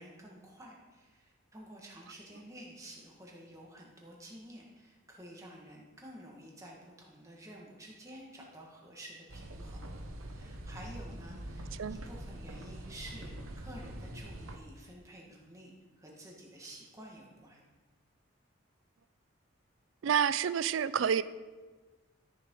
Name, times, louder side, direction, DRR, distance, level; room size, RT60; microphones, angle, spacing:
voice 1, 0.0-9.9 10.3-17.6, right 1 dB, 15° right, -2 dB, 1.6 m, -51 dB
sound 1, 9.3-14.6, right 1 dB, 85° right, 1.0 m, -44 dB
voice 2, 20.0-21.2, right 8 dB, 70° right, 15 dB, 0.4 m, -28 dB
13.0 x 6.7 x 3.8 m, 1.3 s
head